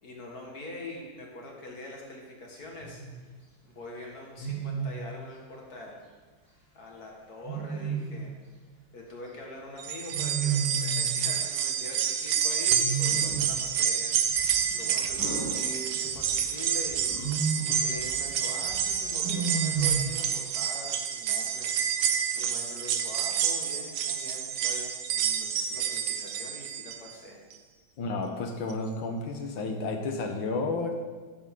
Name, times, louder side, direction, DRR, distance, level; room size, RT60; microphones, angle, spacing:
voice 1, 0.0-3.0 3.6-6.0 6.7-8.3 8.9-14.4 14.7-17.1 17.4-21.7 22.3-27.4, left 2 dB, 50° left, -2 dB, 2.4 m, -43 dB
Wild animals, 2.8-3.2 4.4-5.1 7.4-8.3 10.1-11.2 12.7-13.6 15.2-16.3 17.0-17.9 19.2-20.2, right 5 dB, 10° right, 3.0 m, -32 dB
sound 1, 9.8-27.1 27.5-27.6 28.7-28.8, right 8 dB, 85° right, 1.6 m, -29 dB
sound 2, 13.2-20.5, equal, 65° right, 2.9 m, -50 dB
voice 2, 28.0-31.0, left 3 dB, 80° left, 4 dB, 2.0 m, -31 dB
12.0 x 9.9 x 3.8 m, 1.4 s
omnidirectional pair, 2.1 m